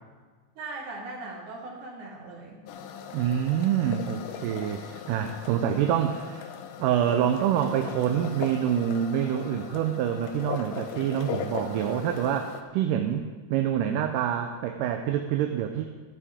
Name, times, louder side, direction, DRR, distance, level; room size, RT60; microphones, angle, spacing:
voice 1, 0.6-2.6, right 3 dB, 65° right, -1 dB, 3.4 m, -39 dB
sound 1, 2.7-12.6, left 7 dB, 80° left, 2.3 m, -39 dB
voice 2, 3.1-6.5 6.8-15.8, right 9 dB, 80° right, 5 dB, 2.2 m, -26 dB
15.0 x 11.5 x 3.6 m, 1.4 s
omnidirectional pair, 3.8 m